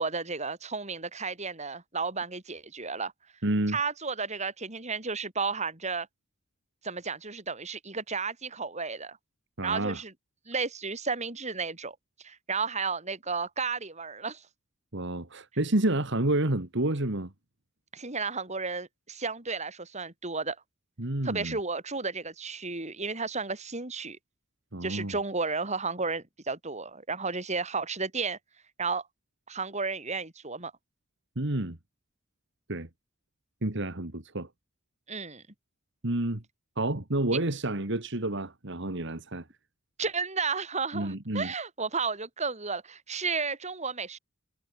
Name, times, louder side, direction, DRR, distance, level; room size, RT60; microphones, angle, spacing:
voice 1, 0.0-3.1 3.7-6.1 6.8-9.2 9.6-10.1 10.5-11.9 12.2-14.4 17.9-20.6 21.2-24.2 24.8-28.4 28.8-29.0 29.5-30.7 35.1-35.4 40.0-44.2, right 4 dB, 35° right, 5.1 m, -33 dB
voice 2, 3.4-3.8 9.6-10.0 14.9-17.3 21.0-21.6 24.7-25.2 31.4-31.8 32.7-32.9 33.6-34.5 36.0-36.4 36.8-39.5 40.9-41.5, right 1 dB, 65° right, 2.3 m, -29 dB
head